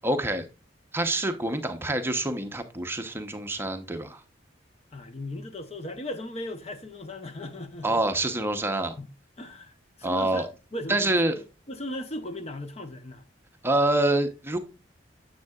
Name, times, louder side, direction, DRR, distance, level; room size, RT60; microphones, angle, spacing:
voice 1, 0.0-0.5 0.9-4.2 7.8-9.0 10.0-10.5 10.9-11.4 13.6-14.6, right 2 dB, 10° right, 0.8 m, -26 dB
voice 2, 4.9-8.0 9.0-9.1 9.4-9.7 10.0-11.4 11.7-13.2, left 1 dB, 35° left, 0.7 m, -37 dB
9.3 x 7.6 x 2.3 m
head